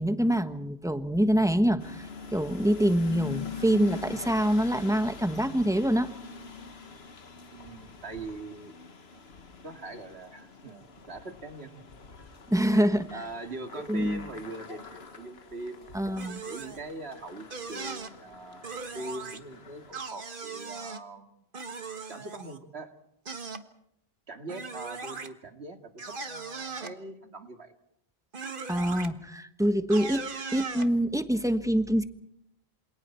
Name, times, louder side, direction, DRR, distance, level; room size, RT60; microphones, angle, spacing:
voice 1, 0.0-6.1 12.5-13.1 13.9-14.2 15.9-16.4 28.7-32.0, equal, 5° right, 9 dB, 1.3 m, -25 dB
sound 1, 1.8-19.9, left 5 dB, 80° left, 1.8 m, -45 dB
voice 2, 7.5-8.7 9.6-11.7 12.7-21.4 22.1-22.9 24.3-27.7, right 2 dB, 85° right, 6 dB, 2.4 m, -42 dB
sound 2, 16.2-16.8 17.5-18.1 18.6-19.4 19.9-21.0 21.5-22.6 23.3-23.6 24.5-25.3 26.0-26.9 28.3-29.1 29.9-30.9, right 4 dB, 55° right, 1.7 m, -38 dB
28.5 x 27.5 x 4.5 m, 0.77 s
omnidirectional pair, 1.1 m